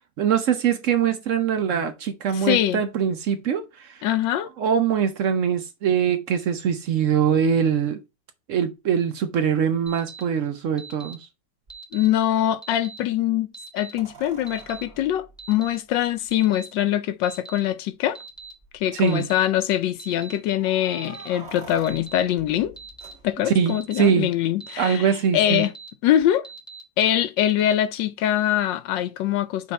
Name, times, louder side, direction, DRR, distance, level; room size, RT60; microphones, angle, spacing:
voice 1, 0.2-4.0 4.6-8.0 8.5-11.2 18.9-19.3 23.5-24.3 24.8-25.6, right 7 dB, 80° right, 0.7 m, -23 dB
voice 2, 2.3-2.8 4.0-4.5 11.9-13.5 13.7-18.2 18.7-22.8 23.2-25.7 26.0-26.5 27.0-29.7, left 12 dB, 75° left, 1.2 m, -23 dB
Alarm, 9.9-10.2 10.8-11.1 11.7-12.1 12.6-13.0 13.5-13.9 14.5-14.8 15.4-15.7 16.3-16.7 17.2-17.6 18.1-18.5 19.1-19.4 20.0-20.3 20.9-21.3 21.8-22.2 22.8-23.1 23.7-24.0 24.6-25.0 25.5-25.9 26.4-26.8 27.4-27.7, right 5 dB, 5° left, 0.9 m, -41 dB
sound 1, 11.7-11.8 14.0-16.4 17.3-17.4 17.7-17.8 18.4-18.8 20.5-23.7 26.2-26.3, right 4 dB, 35° right, 1.8 m, -46 dB
5.7 x 3.8 x 4.3 m
omnidirectional pair, 2.2 m